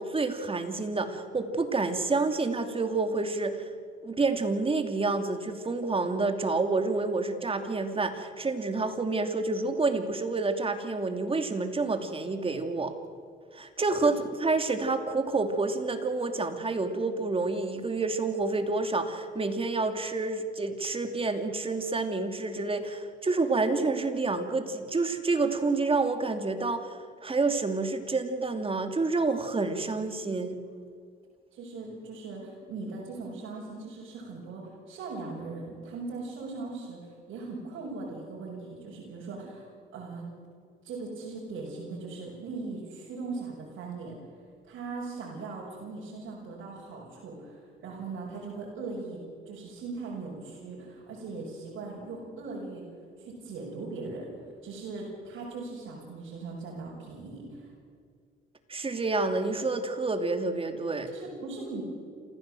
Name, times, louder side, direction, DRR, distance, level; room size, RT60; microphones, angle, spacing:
voice 1, 0.0-3.7 4.0-12.9 13.5-27.0 27.2-30.5 58.7-61.1, right 3 dB, 30° right, 7 dB, 2.7 m, -28 dB
voice 2, 31.5-40.2 40.8-44.2 44.6-49.2 49.5-52.8 53.2-54.3 54.6-57.7 61.1-61.8, right 3 dB, 75° right, -4 dB, 6.1 m, -39 dB
28.0 x 15.5 x 7.8 m, 2.1 s
cardioid pair, 90°, 20 cm